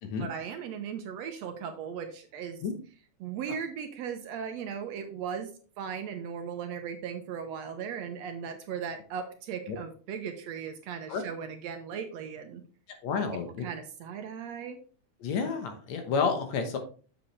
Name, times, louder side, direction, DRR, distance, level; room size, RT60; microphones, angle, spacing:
voice 1, 0.2-2.6 3.2-5.5 5.8-12.6 13.6-14.8, right 7 dB, 75° right, 6 dB, 1.8 m, -37 dB
voice 2, 12.9-13.6 15.2-16.8, left 5 dB, 70° left, 6 dB, 2.2 m, -30 dB
7.5 x 7.0 x 3.2 m, 0.39 s
omnidirectional pair, 3.5 m